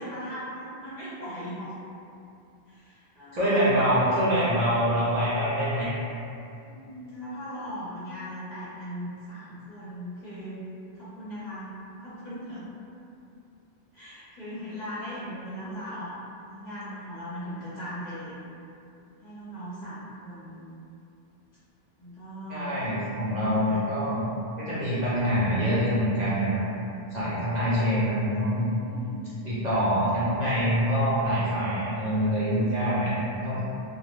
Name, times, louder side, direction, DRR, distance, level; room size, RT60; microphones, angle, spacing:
voice 1, 0.0-1.7 2.7-4.0 6.5-10.6 10.9-11.7 12.0-12.7 13.9-16.2 16.5-18.4 19.2-20.7 22.0-22.8 23.4-23.8 28.7-29.3 33.2-33.6, equal, 50° left, -11 dB, 0.8 m, -39 dB
voice 2, 3.3-5.9 22.5-24.3 24.6-26.6 27.1-28.7 29.4-33.6, equal, 50° right, -11 dB, 0.6 m, -25 dB
2.1 x 2.1 x 3.0 m, 2.6 s
omnidirectional pair, 1.0 m